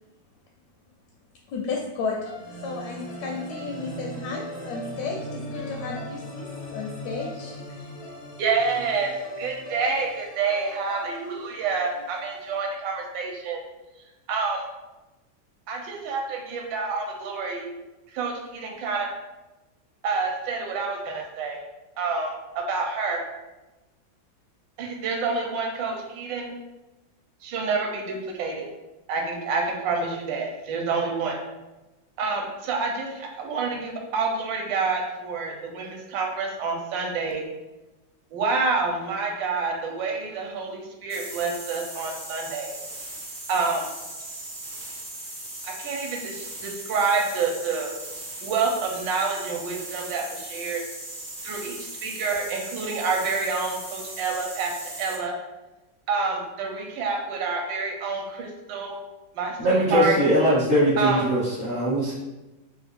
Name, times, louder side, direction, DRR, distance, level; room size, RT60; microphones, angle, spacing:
voice 1, 1.5-2.3 2.6-7.9, left 4 dB, 75° left, -1 dB, 1.0 m, -33 dB
sound 1, 2.2-12.5, equal, 90° left, 0.5 m, -39 dB
voice 2, 8.4-9.1 9.4-13.6 14.3-14.7 15.7-17.7 18.1-19.1 20.0-21.6 22.0-23.2 24.8-26.5 27.4-28.7 29.1-31.4 32.2-37.4 38.3-42.7 43.5-43.9 45.6-47.9 48.4-50.8 51.4-55.4 56.1-58.9 59.3-59.6 59.9-60.2 61.0-61.2, right 4 dB, 80° right, 1 dB, 1.3 m, -28 dB
sound 2, 41.1-55.2, right 1 dB, 50° right, 0.5 m, -38 dB
voice 3, 59.6-62.1, equal, 35° left, -8 dB, 0.5 m, -21 dB
3.3 x 2.4 x 3.4 m, 1.0 s
omnidirectional pair, 2.1 m